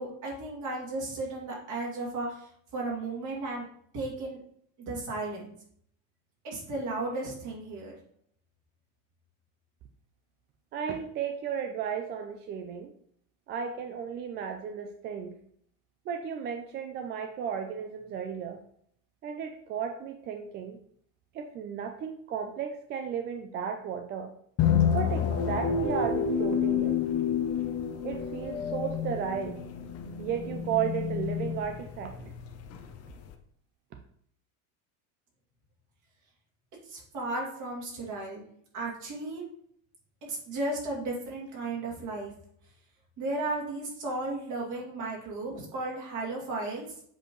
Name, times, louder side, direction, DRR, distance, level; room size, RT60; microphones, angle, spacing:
voice 1, 0.0-3.7 3.9-4.4 4.8-5.5 6.4-8.0 36.8-38.4 38.7-39.5 40.3-42.3 43.2-46.9, right 2 dB, 45° right, -3 dB, 2.7 m, -34 dB
voice 2, 10.7-12.9 13.5-15.3 16.1-18.6 19.2-20.8 21.3-24.3 24.9-27.0 28.0-29.6 30.2-32.3, right 7 dB, 25° right, 5 dB, 0.3 m, -34 dB
sound 1, 24.6-33.3, left 7 dB, 35° left, 0.7 m, -29 dB
7.6 x 4.4 x 3.1 m, 0.65 s
supercardioid pair, 145°, 43 cm